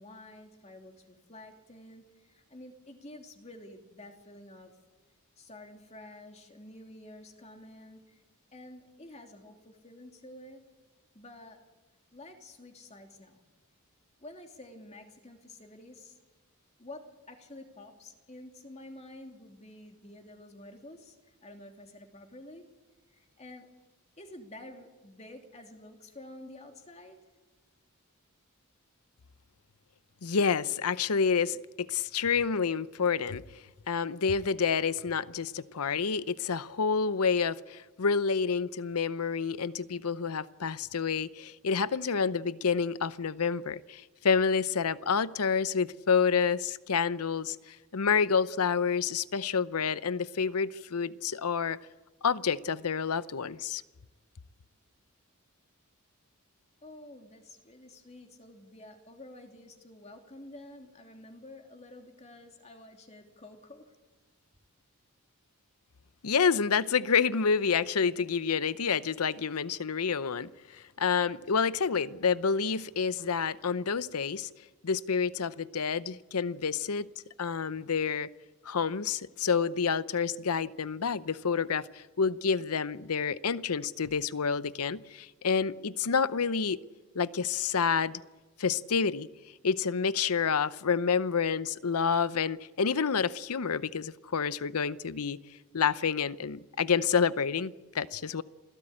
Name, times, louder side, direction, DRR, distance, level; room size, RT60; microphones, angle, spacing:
voice 1, 0.0-4.8 5.4-8.2 8.5-10.7 11.1-11.6 12.1-13.4 14.2-16.2 16.8-22.6 23.1-23.7 24.2-27.2 56.8-63.9, left 1 dB, 30° left, 2.9 m, -50 dB
voice 2, 30.2-33.4 33.9-51.8 52.2-53.8 66.2-74.5 74.8-77.1 77.4-78.3 78.6-86.8 87.1-88.2 88.6-89.3 89.6-95.4 95.7-98.4, left 6 dB, 80° left, 0.7 m, -28 dB
28.0 x 18.0 x 8.8 m
head